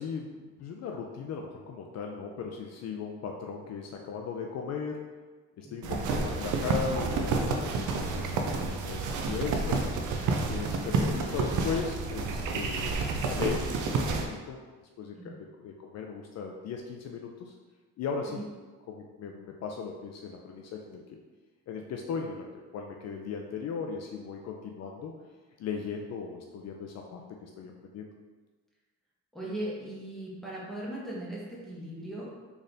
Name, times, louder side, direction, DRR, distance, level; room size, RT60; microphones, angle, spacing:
voice 1, 0.0-5.1 5.6-9.8 10.5-12.9 13.3-14.6 15.0-17.5 18.0-18.4 18.9-21.2 21.7-25.1 25.6-28.1, left 5 dB, 60° left, 1 dB, 0.4 m, -37 dB
sound 1, 5.8-14.3, right 3 dB, 75° right, 0.6 m, -30 dB
voice 2, 29.3-32.3, right 1 dB, ahead, -6 dB, 1.2 m, -38 dB
4.0 x 3.4 x 2.5 m, 1.3 s
cardioid pair, 90°, 30 cm